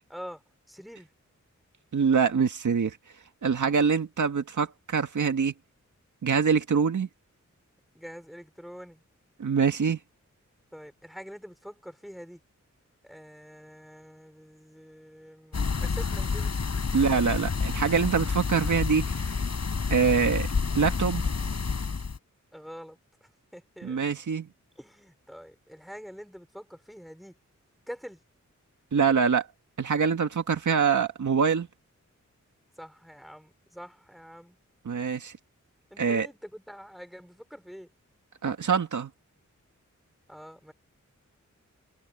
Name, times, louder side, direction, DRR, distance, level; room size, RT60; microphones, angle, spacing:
voice 1, 0.1-1.1 7.9-9.0 10.7-12.4 13.0-16.6 22.5-24.0 24.8-27.4 27.9-28.2 32.8-34.6 35.9-37.9 40.3-40.7, equal, ahead, 5.3 m, -45 dB
voice 2, 1.9-3.0 3.4-5.5 6.2-7.1 9.4-10.0 16.9-19.3 19.9-20.5 20.7-21.2 23.8-24.5 28.9-29.5 29.8-31.7 34.9-35.3 36.0-36.3 38.4-39.1, right 6 dB, 80° right, 2.0 m, -24 dB
sound 1, 15.5-22.2, left 5 dB, 60° left, 5.2 m, -29 dB
wide cardioid pair, 115°, 30 cm